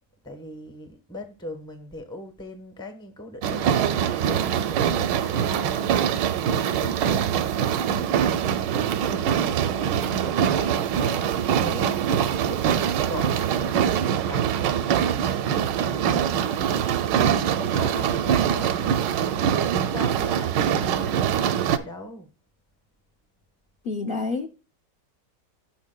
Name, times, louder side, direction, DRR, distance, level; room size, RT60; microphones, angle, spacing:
voice 1, 0.2-8.3 8.7-12.7 13.0-22.3, left 1 dB, 5° left, 0.6 m, -40 dB
sound 1, 3.4-21.8, right 8 dB, 90° right, 1.3 m, -23 dB
voice 2, 23.8-24.5, left 3 dB, 60° left, 0.5 m, -28 dB
15.0 x 6.0 x 2.2 m
omnidirectional pair, 1.9 m